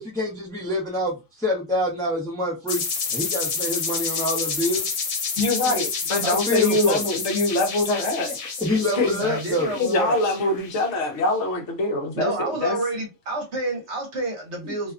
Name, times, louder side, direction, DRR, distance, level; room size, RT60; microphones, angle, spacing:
voice 1, 0.0-2.8 3.1-4.9 5.6-5.9 6.2-7.1 8.2-9.7, left 1 dB, 5° left, 0.6 m, -26 dB
sound 1, 2.7-11.2, left 5 dB, 80° left, 1.1 m, -29 dB
voice 2, 5.4-8.3 9.0-9.2 9.7-12.3 12.6-12.8 14.6-14.7, left 2 dB, 60° left, 1.0 m, -23 dB
voice 3, 9.2-10.2 12.1-14.9, right 2 dB, 60° right, 1.0 m, -29 dB
2.7 x 2.2 x 2.4 m
omnidirectional pair, 1.5 m